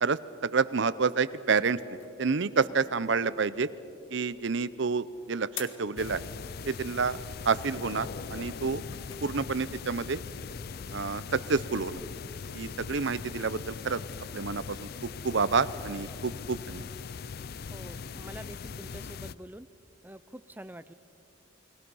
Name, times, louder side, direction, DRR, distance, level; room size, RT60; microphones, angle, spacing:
voice 1, 0.0-1.8 2.2-3.7 4.1-6.3 6.7-7.2 7.5-8.8 9.2-10.2 10.9-12.0 12.5-14.0 14.3-16.9, right 5 dB, 60° right, 16 dB, 0.6 m, -29 dB
sound 1, 1.5-12.6, left 8 dB, 75° left, 1.7 m, -52 dB
sound 2, 6.0-19.3, left 5 dB, 50° left, 0.4 m, -40 dB
voice 2, 17.7-19.7 20.0-20.9, right 1 dB, 10° right, 13 dB, 0.5 m, -46 dB
29.5 x 21.5 x 5.5 m, 3.0 s
head